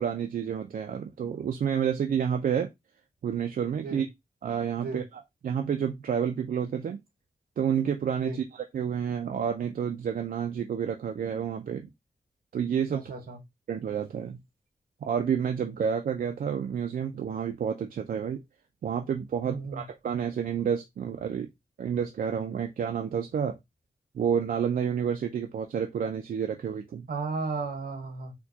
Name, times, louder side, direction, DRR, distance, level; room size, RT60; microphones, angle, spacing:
voice 1, 0.0-2.7 3.2-4.1 4.4-5.0 5.4-7.0 7.6-11.9 12.5-13.1 13.7-14.4 15.0-18.4 18.8-21.5 21.8-23.6 24.1-27.1, right 8 dB, 70° right, 0.4 m, -29 dB
voice 2, 12.9-13.4 19.4-19.8 27.1-28.3, right 4 dB, 85° right, 1.0 m, -34 dB
4.4 x 2.2 x 2.7 m
wide cardioid pair, 155°, 15 cm